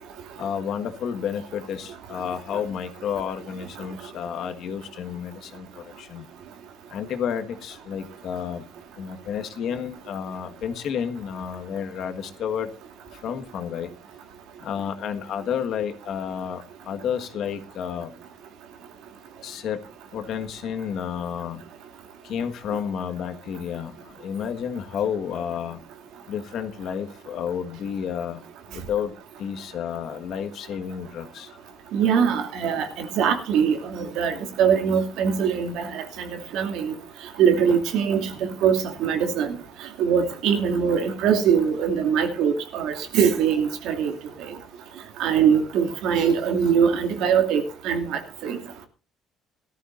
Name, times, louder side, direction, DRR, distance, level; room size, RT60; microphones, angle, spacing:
voice 1, 0.4-6.2 6.9-8.6 9.0-12.7 13.1-13.9 14.6-18.1 19.4-19.8 20.1-21.6 22.2-25.8 26.3-28.4 28.7-29.1 29.4-31.5, left 8 dB, 60° left, 8 dB, 1.6 m, -31 dB
voice 2, 31.9-36.9 37.4-38.3 38.6-39.6 40.0-44.1 44.4-44.5 45.2-48.6, right 7 dB, 80° right, 5 dB, 2.6 m, -22 dB
18.0 x 13.5 x 2.6 m, 0.36 s
cardioid pair, 130°, 0 cm